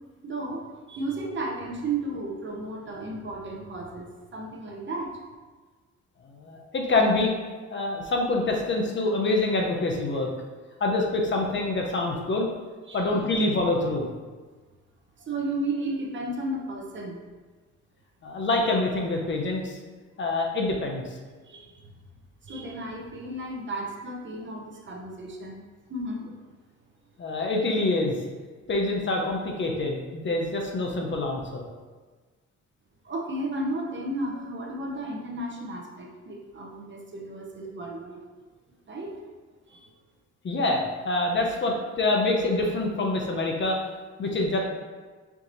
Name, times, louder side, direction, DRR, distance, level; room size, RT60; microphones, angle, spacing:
voice 1, 0.2-5.1 12.9-13.4 15.2-17.2 21.4-21.9 22.4-25.6 25.9-26.4 33.0-38.2 38.9-39.1 39.7-39.9, right 2 dB, 40° right, -1 dB, 0.7 m, -34 dB
voice 2, 6.4-7.3 7.7-10.3 10.8-12.5 12.9-14.1 18.2-19.8 20.2-21.0 27.2-28.2 28.7-31.6 40.4-43.8 44.2-44.6, left 2 dB, 40° left, 1 dB, 0.7 m, -26 dB
4.6 x 2.8 x 2.6 m, 1.4 s
cardioid pair, 90°, 30 cm